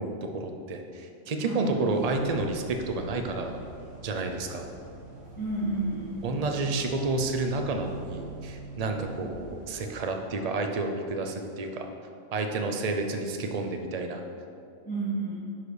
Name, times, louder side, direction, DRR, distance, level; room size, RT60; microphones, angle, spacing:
voice 1, 0.0-3.6 4.0-4.7 6.2-11.8 12.3-14.2, right 3 dB, 40° right, 4 dB, 0.6 m, -30 dB
voice 2, 1.4-1.8 5.3-6.2 9.2-9.3 14.8-15.4, right 2 dB, 15° left, -11 dB, 1.6 m, -31 dB
sound 1, 1.9-10.0, right 3 dB, 65° right, 1.5 m, -44 dB
11.0 x 4.9 x 4.9 m, 2.4 s
omnidirectional pair, 1.4 m